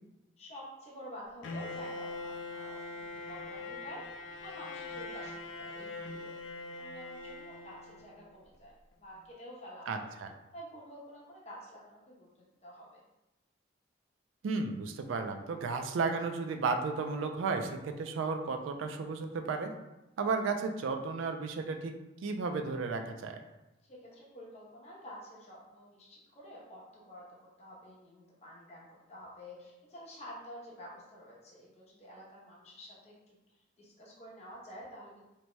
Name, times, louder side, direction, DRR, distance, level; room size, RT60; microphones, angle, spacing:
voice 1, 0.4-6.4 6.7-10.1 10.5-13.0 23.8-27.3 27.6-35.2, equal, 35° left, -5 dB, 0.7 m, -49 dB
Bowed string instrument, 1.4-8.4, left 3 dB, 85° left, 0.3 m, -42 dB
voice 2, 9.9-10.3 14.4-19.7 20.2-21.9 22.2-23.4, right 4 dB, 75° right, 6 dB, 0.3 m, -33 dB
2.8 x 2.2 x 3.0 m, 0.96 s
head